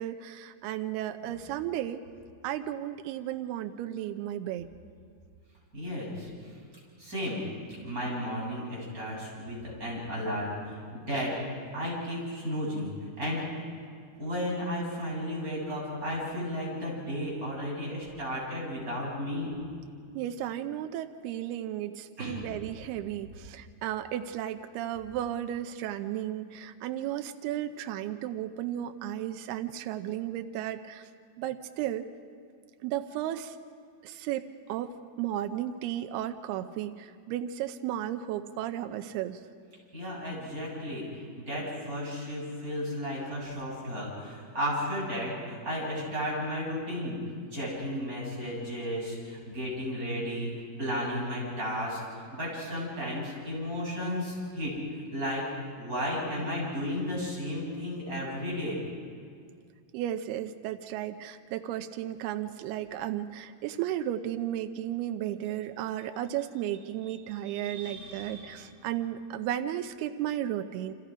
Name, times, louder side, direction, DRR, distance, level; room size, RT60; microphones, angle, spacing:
voice 1, 0.0-2.0 2.4-4.7 20.2-31.1 31.4-32.1 32.8-33.6 34.0-34.9 35.2-39.4 59.9-70.9, right 12 dB, 85° right, 7 dB, 2.8 m, -34 dB
voice 2, 5.7-6.3 7.0-7.4 7.8-11.3 11.7-13.4 14.2-19.5 22.2-22.4 39.9-41.0 41.3-50.5 50.8-54.7 55.1-55.4 55.8-58.8 67.4-68.7, equal, 20° right, -5 dB, 7.8 m, -34 dB
29.5 x 26.0 x 5.1 m, 2.1 s
omnidirectional pair, 4.6 m